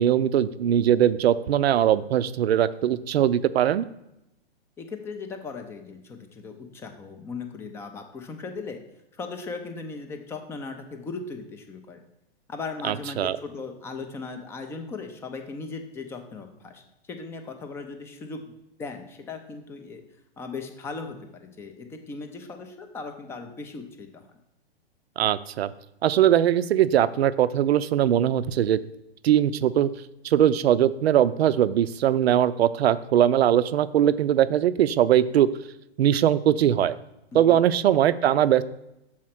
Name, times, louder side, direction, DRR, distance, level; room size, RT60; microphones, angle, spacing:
voice 1, 0.0-3.8 12.8-13.4 25.2-25.7 26.0-28.8 29.2-29.9 30.2-35.5 36.0-37.0 37.3-38.6, right 10 dB, 75° right, 15 dB, 0.5 m, -21 dB
voice 2, 4.8-8.8 9.2-12.0 12.5-16.8 17.1-18.5 18.8-20.0 20.4-24.4 37.3-37.6, left 4 dB, 10° left, 5 dB, 0.4 m, -38 dB
6.4 x 4.3 x 5.7 m, 0.88 s
hypercardioid pair, 125°, 32 cm